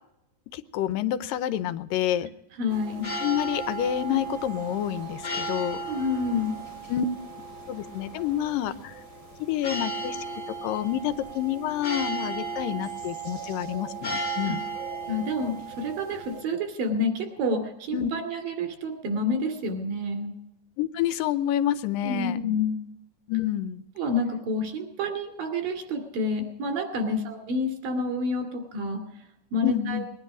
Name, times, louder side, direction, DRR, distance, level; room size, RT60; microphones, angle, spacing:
voice 1, 0.5-2.3 3.2-5.8 6.9-7.1 7.7-8.9 9.4-10.2 10.6-14.6 17.9-18.1 20.8-22.4 23.3-23.8 27.1-27.2 29.6-30.1, left 11 dB, 85° left, 13 dB, 2.4 m, -28 dB
voice 2, 2.6-3.1 5.9-6.5 14.5-14.6 15.1-20.3 22.0-22.8 24.0-29.0 29.5-30.0, left 2 dB, 80° right, 5 dB, 4.2 m, -28 dB
sound 1, 2.7-16.4, right 3 dB, 25° left, 3.5 m, -35 dB
20.0 x 10.5 x 6.0 m, 0.85 s
omnidirectional pair, 3.9 m